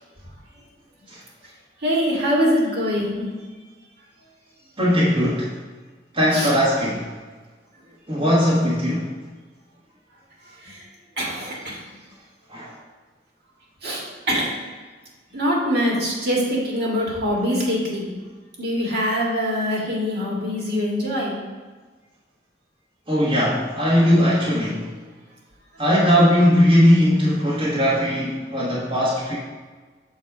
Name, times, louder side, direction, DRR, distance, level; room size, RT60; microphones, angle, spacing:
voice 1, 1.8-3.3 6.3-6.5 10.6-10.8 11.2-11.8 13.8-14.6 15.3-18.1 18.6-21.4, equal, 60° right, -3 dB, 1.8 m, -23 dB
voice 2, 4.8-5.6 6.1-7.1 8.1-9.1 12.5-12.7 23.1-24.9 25.8-29.4, equal, 30° right, -7 dB, 1.2 m, -19 dB
7.0 x 4.1 x 4.7 m, 1.4 s
head